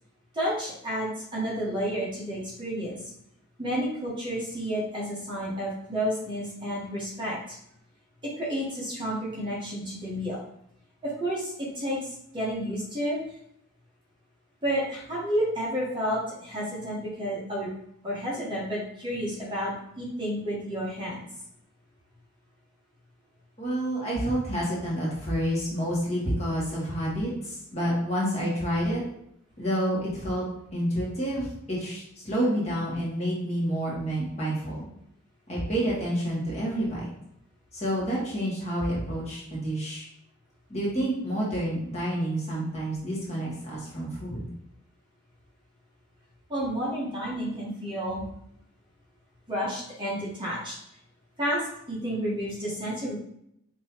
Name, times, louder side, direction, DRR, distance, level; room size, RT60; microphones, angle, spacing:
voice 1, 0.3-3.0 3.6-7.6 8.4-10.4 11.0-13.2 14.6-17.7 18.0-21.2 46.5-48.2 49.5-50.7 51.4-53.1, equal, 20° right, -6 dB, 1.2 m, -31 dB
voice 2, 23.6-29.0 29.6-30.5 30.7-34.9 35.5-37.0 37.7-40.1 40.7-44.4, equal, 30° left, -6 dB, 1.6 m, -29 dB
5.3 x 3.0 x 3.0 m, 0.75 s
head